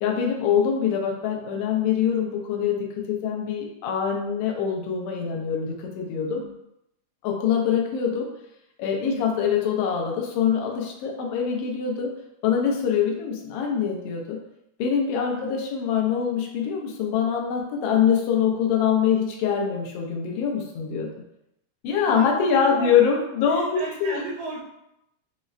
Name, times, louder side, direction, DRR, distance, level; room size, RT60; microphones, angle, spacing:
voice 1, 0.0-2.8 3.1-6.4 7.2-8.3 8.8-12.1 12.4-14.4 14.8-21.1 21.8-24.2, left 7 dB, 85° left, 0 dB, 1.3 m, -24 dB
voice 2, 22.1-23.0 23.5-24.6, right 3 dB, 80° right, -3 dB, 1.6 m, -35 dB
5.2 x 2.0 x 2.4 m, 0.84 s
omnidirectional pair, 3.4 m